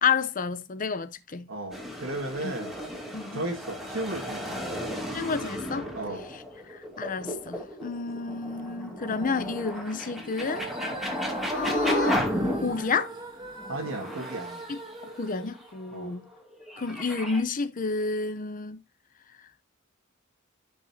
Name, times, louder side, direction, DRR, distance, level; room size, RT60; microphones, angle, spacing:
voice 1, 0.0-1.5 2.4-2.5 3.1-3.4 5.1-5.9 6.7-10.7 11.5-12.3 12.6-13.1 14.7-14.8 15.2-16.3 16.8-18.8, left 4 dB, 40° left, 0.7 m, -30 dB
voice 2, 1.5-2.8 3.3-4.6 5.9-6.2 13.7-14.7 15.9-16.1, right 1 dB, 75° right, 1.9 m, -35 dB
sound 1, 1.7-13.1 13.6-15.3 16.3-17.4, equal, ahead, 2.5 m, -33 dB
sound 2, 10.2-16.4, right 2 dB, 20° right, 3.0 m, -42 dB
16.5 x 5.6 x 2.8 m
head